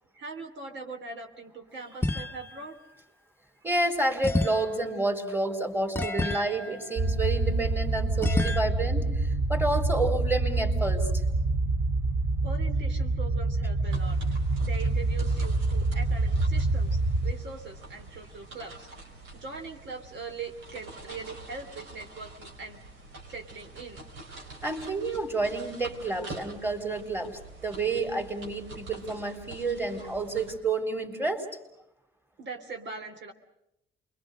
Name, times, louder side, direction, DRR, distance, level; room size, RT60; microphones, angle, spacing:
voice 1, 0.1-2.7 6.2-6.4 8.3-8.4 11.0-11.1 12.4-14.2 14.6-18.9 19.3-22.8 23.3-24.0 30.0-30.3 32.4-33.3, right 4 dB, 65° right, 3 dB, 3.1 m, -41 dB
sound 1, 2.0-2.7 4.2-7.6 8.2-8.6, left 1 dB, 10° left, 1.1 m, -31 dB
voice 2, 3.6-11.1 24.6-31.5, right 2 dB, 10° right, 4 dB, 4.0 m, -29 dB
sound 2, 7.0-17.3, right 2 dB, 50° right, 2.7 m, -26 dB
sound 3, 13.9-30.6, right 3 dB, 85° right, 5.2 m, -46 dB
28.5 x 23.5 x 6.4 m, 0.83 s
cardioid pair, 90°, 20 cm